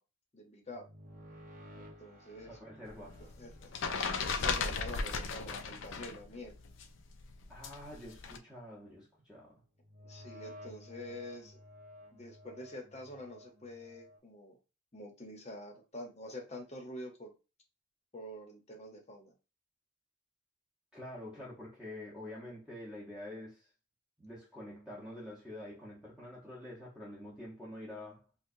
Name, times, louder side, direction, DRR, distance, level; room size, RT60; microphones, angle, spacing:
voice 1, 0.3-0.9 1.7-2.6 3.4-3.7 4.2-6.6 10.0-11.6 12.1-14.6 14.9-17.3 18.1-19.3, left 1 dB, 35° left, 0.9 m, -47 dB
sound 1, 0.7-7.8 9.8-14.2, left 1 dB, 40° right, 0.7 m, -55 dB
voice 2, 2.5-3.3 7.5-9.6 20.9-23.7 24.2-28.3, left 1 dB, 5° right, 0.9 m, -47 dB
sound 2, 2.9-6.2 6.5-8.4, left 4 dB, 70° left, 0.5 m, -36 dB
4.5 x 2.3 x 2.6 m
head